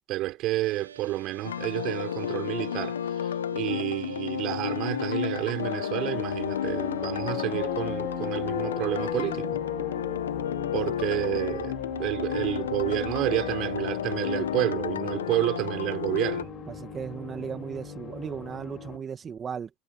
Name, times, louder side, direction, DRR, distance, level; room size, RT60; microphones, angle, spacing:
voice 1, 0.0-9.6 10.7-16.5, right 17 dB, 50° right, 5.1 m, -30 dB
sound 1, 0.6-19.0, right 6 dB, 85° right, 2.3 m, -46 dB
sound 2, 1.4-16.4, left 9 dB, 80° left, 1.4 m, -32 dB
sound 3, 5.7-19.0, left 9 dB, 35° left, 2.6 m, -38 dB
voice 2, 16.7-19.7, right 7 dB, 30° right, 2.2 m, -36 dB
hypercardioid pair, 85°, 0 cm